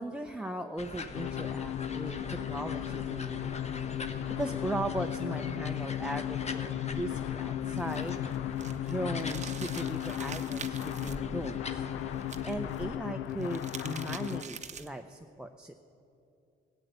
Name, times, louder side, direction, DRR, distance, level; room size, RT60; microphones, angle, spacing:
voice 1, 0.0-3.6 4.3-8.2 8.9-11.8 12.4-15.7, right 1 dB, 5° right, 6 dB, 0.6 m, -38 dB
sound 1, 0.8-13.0, left 3 dB, 35° left, 1.0 m, -43 dB
sound 2, 1.1-14.4, left 11 dB, 90° left, 0.5 m, -35 dB
sound 3, 7.7-11.2 12.2-12.8 13.3-15.0, right 6 dB, 35° right, 0.8 m, -45 dB
15.5 x 7.9 x 9.4 m, 2.7 s
cardioid pair, 90°, 20 cm